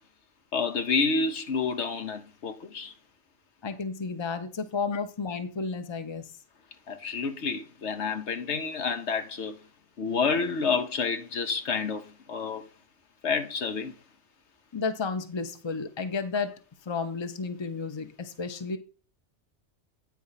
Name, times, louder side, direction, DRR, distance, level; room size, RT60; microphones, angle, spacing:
voice 1, 0.5-2.9 6.9-9.5 10.0-12.6 13.2-13.9, left 5 dB, 70° left, 1.2 m, -29 dB
voice 2, 3.6-6.3 14.7-16.5 16.9-18.8, left 4 dB, 25° left, 0.8 m, -32 dB
9.1 x 4.7 x 5.6 m
omnidirectional pair, 1.2 m